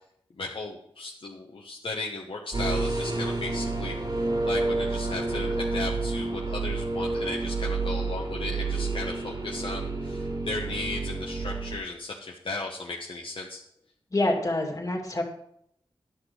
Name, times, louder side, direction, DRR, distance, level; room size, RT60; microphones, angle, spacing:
voice 1, 0.3-13.6, left 3 dB, 65° left, -1 dB, 1.1 m, -36 dB
sound 1, 2.5-11.8, right 3 dB, 50° right, 2.5 m, -29 dB
voice 2, 14.1-15.2, left 2 dB, 40° left, 1 dB, 2.4 m, -26 dB
11.0 x 6.2 x 4.9 m, 0.72 s
wide cardioid pair, 75°, 10 cm